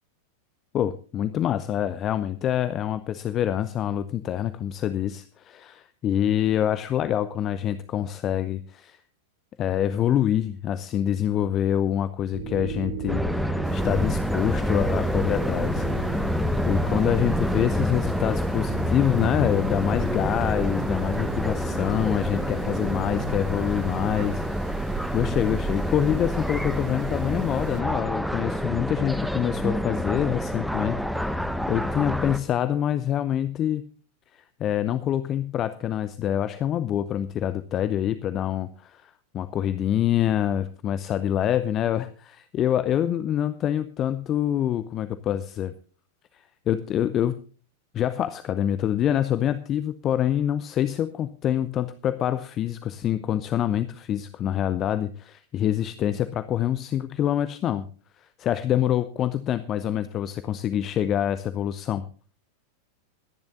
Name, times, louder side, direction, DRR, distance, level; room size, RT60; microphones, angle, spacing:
voice 1, 0.7-9.0 9.6-16.3 16.7-33.8 34.3-45.7 46.3-47.4 47.9-57.9 58.2-62.0, left 10 dB, 30° left, 13 dB, 0.7 m, -26 dB
sound 1, 12.3-24.3, right 1 dB, 60° right, 3.0 m, -37 dB
sound 2, 13.1-32.4, equal, ahead, 1.2 m, -27 dB
sound 3, 13.6-27.8, right 8 dB, 40° right, 0.9 m, -39 dB
26.5 x 10.5 x 2.6 m, 0.40 s
figure-of-eight pair, 90°, 0 cm